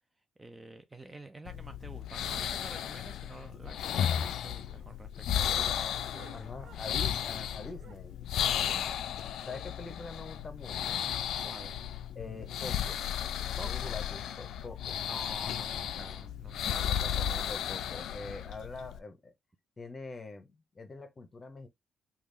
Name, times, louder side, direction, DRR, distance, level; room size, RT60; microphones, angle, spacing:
voice 1, 0.4-5.8 6.3-6.8 8.6-8.9 11.4-11.7 13.6-14.0 14.9-17.2, right 2 dB, 15° right, 0.4 m, -49 dB
sound 1, 1.4-19.0, left 9 dB, 75° left, 0.3 m, -34 dB
sound 2, 4.5-7.5 7.7-9.7 10.0-10.1 10.4-10.5 10.9-11.0 11.6-11.9 12.7-12.8, right 7 dB, 65° right, 0.6 m, -56 dB
voice 2, 6.3-8.2 9.5-11.1 12.1-13.0 13.6-15.0 16.9-19.3 19.8-21.7, left 3 dB, 30° left, 0.8 m, -44 dB
3.5 x 2.4 x 3.3 m
cardioid pair, 90°, 0 cm